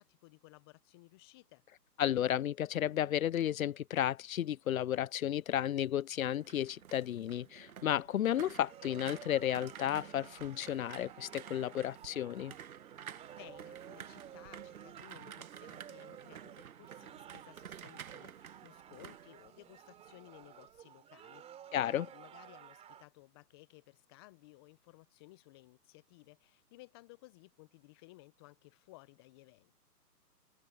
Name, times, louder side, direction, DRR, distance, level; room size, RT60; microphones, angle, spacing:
voice 1, 0.0-1.6 13.4-21.5 21.8-29.8, left 22 dB, 15° left, 0.8 m, -58 dB
voice 2, 2.0-12.5 21.7-22.1, left 11 dB, 60° left, 0.5 m, -33 dB
sound 1, 6.1-20.1 20.4-20.8, right 8 dB, 60° right, 1.5 m, -51 dB
sound 2, 8.6-23.1, right 10 dB, 15° right, 3.0 m, -54 dB
figure-of-eight pair, 140°, 48 cm